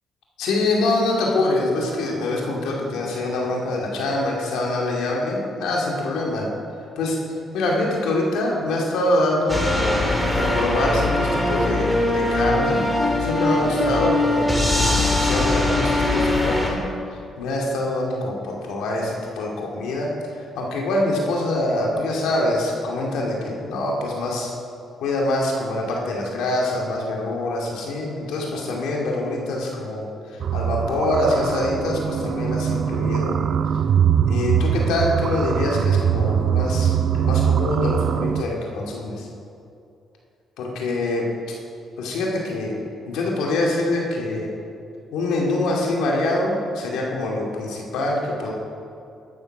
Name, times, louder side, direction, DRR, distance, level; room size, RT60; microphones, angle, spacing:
voice 1, 0.4-6.5 7.0-7.2 7.5-10.0 10.3-12.8 13.2-14.5 14.8-16.8 17.4-24.5 25.0-30.1 30.3-33.4 34.3-39.3 40.6-41.6 42.0-42.8 43.1-44.5 45.1-48.5, left 2 dB, 90° left, -2 dB, 2.2 m, -24 dB
sound 1, 9.5-16.7, left 1 dB, 5° left, 2.2 m, -21 dB
sound 2, 30.4-38.4, right 8 dB, 60° right, 0.4 m, -22 dB
12.5 x 7.2 x 6.0 m, 2.6 s
cardioid pair, 90°, 0 cm